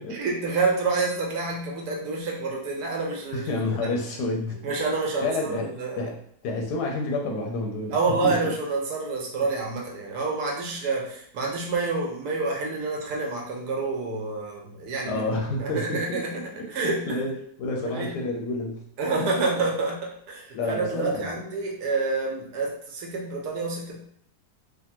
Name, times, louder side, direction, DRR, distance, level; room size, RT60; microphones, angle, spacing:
voice 1, 0.1-3.5 3.8-3.9 4.6-6.1 7.9-15.2 15.6-16.4 16.7-17.1 17.8-18.1 19.0-24.2, right 3 dB, 80° right, -1 dB, 1.2 m, -28 dB
voice 2, 3.3-4.6 5.2-5.6 6.0-6.2 6.4-8.0 8.2-8.5 15.1-16.7 17.1-17.3 17.6-18.8 20.5-21.4, left 2 dB, 85° left, 0 dB, 1.2 m, -29 dB
3.3 x 2.1 x 2.9 m, 0.64 s
omnidirectional pair, 1.7 m